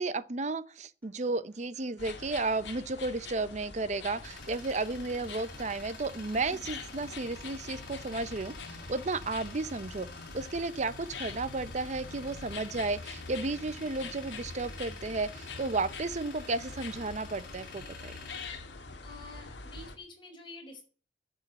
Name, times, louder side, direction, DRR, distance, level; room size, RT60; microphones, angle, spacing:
voice 1, 0.0-10.1 10.3-18.1, right 3 dB, 35° right, 0.6 m, -33 dB
Acoustic guitar, 1.0-9.0, left 2 dB, 10° left, 2.0 m, -62 dB
sound 1, 2.0-20.0, left 3 dB, 70° left, 1.7 m, -45 dB
Tools, 4.1-19.5, left 3 dB, 55° left, 5.9 m, -49 dB
voice 2, 19.0-20.8, left 2 dB, 25° left, 5.1 m, -48 dB
10.5 x 6.4 x 8.9 m
head